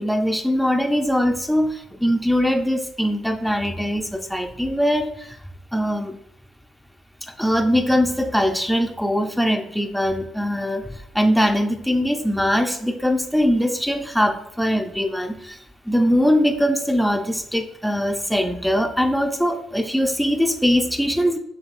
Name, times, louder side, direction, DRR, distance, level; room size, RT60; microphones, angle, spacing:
voice 1, 0.0-5.3 5.7-6.1 7.4-15.6 15.9-21.4, equal, ahead, 5 dB, 0.5 m, -21 dB
5.9 x 3.3 x 2.4 m, 0.78 s
hypercardioid pair, 45°, 0 cm